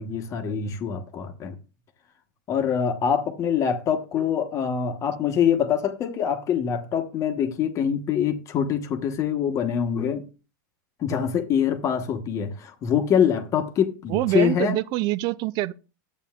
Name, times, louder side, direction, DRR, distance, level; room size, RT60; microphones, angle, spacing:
voice 1, 0.0-1.5 2.5-10.2 11.0-14.8, left 8 dB, 30° left, 1.1 m, -24 dB
voice 2, 14.1-15.7, right 16 dB, 40° right, 0.5 m, -25 dB
13.0 x 8.3 x 2.4 m
supercardioid pair, 140°, 11 cm